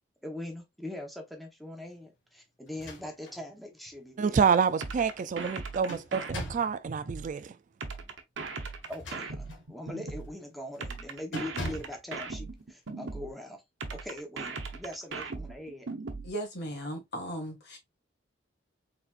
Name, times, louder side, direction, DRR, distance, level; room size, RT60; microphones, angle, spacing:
voice 1, 0.2-4.4 8.9-13.6 13.9-15.9, left 1 dB, ahead, 1.0 m, -42 dB
sound 1, 2.7-3.4 3.9-4.0 5.4-6.8 8.8-9.7 10.2-10.4 10.7-11.0 11.3-12.0, equal, 80° left, 1.7 m, -40 dB
voice 2, 4.2-7.5, right 6 dB, 40° right, 0.3 m, -27 dB
sound 2, 4.8-7.3 7.8-10.3 10.8-13.3 13.8-16.3, right 3 dB, 75° right, 1.0 m, -38 dB
voice 3, 16.2-17.8, right 1 dB, 60° left, 1.9 m, -37 dB
4.2 x 4.0 x 2.4 m
head